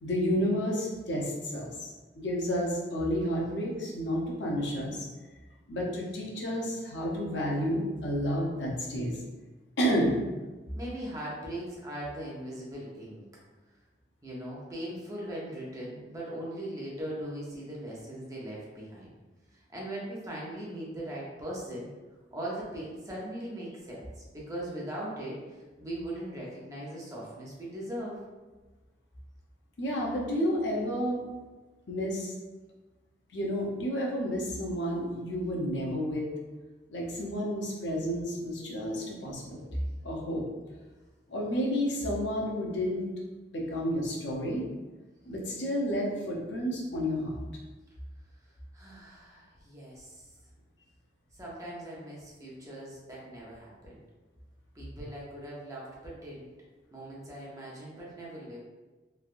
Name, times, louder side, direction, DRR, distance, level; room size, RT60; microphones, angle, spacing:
voice 1, 0.0-1.9 2.2-5.1 5.7-9.2 9.8-10.2 29.8-31.2 31.9-32.3 33.3-36.3 36.9-39.7 40.0-40.4 41.3-43.0 43.5-44.7 45.2-47.4, equal, 90° left, -2 dB, 0.7 m, -30 dB
voice 2, 10.7-13.2 14.2-19.1 19.5-21.9 22.3-25.4 25.8-28.2 48.7-50.3 51.4-54.0 54.7-56.5 56.9-58.6, right 1 dB, 20° right, -5 dB, 0.7 m, -39 dB
3.3 x 2.4 x 2.5 m, 1.2 s
head